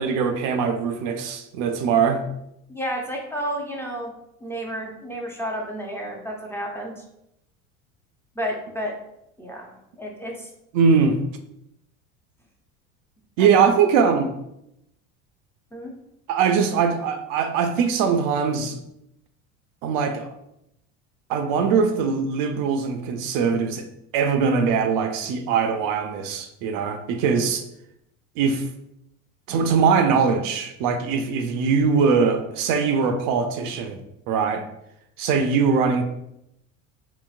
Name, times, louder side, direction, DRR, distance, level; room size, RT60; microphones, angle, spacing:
voice 1, 0.0-2.2 10.7-11.2 13.4-14.3 16.3-18.8 19.8-20.3 21.3-23.9 24.1-27.6 28.4-28.7 29.5-34.0 34.3-34.6 35.2-36.0, right 5 dB, 55° right, 6 dB, 0.5 m, -21 dB
voice 2, 2.7-4.1 4.4-7.0 8.4-8.9 9.4-10.5 13.4-13.6 15.7-15.9, equal, 5° left, -2 dB, 0.5 m, -31 dB
3.8 x 2.0 x 2.4 m, 0.80 s
hypercardioid pair, 85°, 41 cm